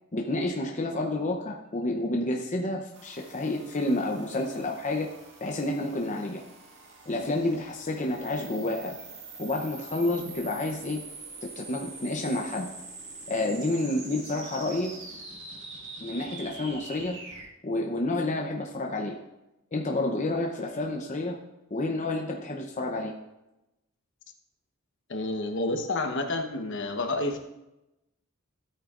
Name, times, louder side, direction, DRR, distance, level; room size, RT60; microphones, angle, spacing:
voice 1, 0.1-5.1 5.4-6.4 7.1-8.9 9.4-11.0 11.4-12.7 13.3-14.9 16.0-17.2 17.6-19.2 19.7-21.4 21.7-23.1, left 2 dB, 35° left, 1 dB, 0.7 m, -29 dB
sound 1, 2.9-17.5, right 3 dB, 60° right, 1.9 m, -45 dB
voice 2, 25.1-27.4, left 2 dB, 60° left, 5 dB, 1.1 m, -29 dB
13.5 x 8.9 x 2.5 m, 0.94 s
head